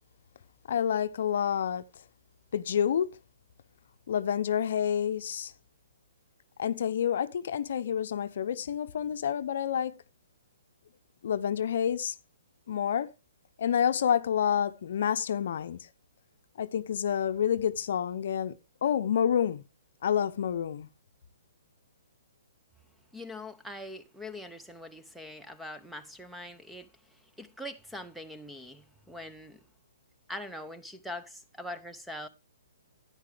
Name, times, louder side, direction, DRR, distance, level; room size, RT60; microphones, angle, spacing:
voice 1, 0.7-1.9 2.5-3.2 4.1-5.5 6.6-10.0 11.2-12.1 12.7-13.1 13.6-15.9 16.6-19.6 20.0-20.9, left 8 dB, 60° left, 0.7 m, -28 dB
voice 2, 23.1-29.6 30.3-32.3, left 1 dB, ahead, 0.8 m, -43 dB
11.5 x 9.9 x 3.4 m
hypercardioid pair, 135°, 0 cm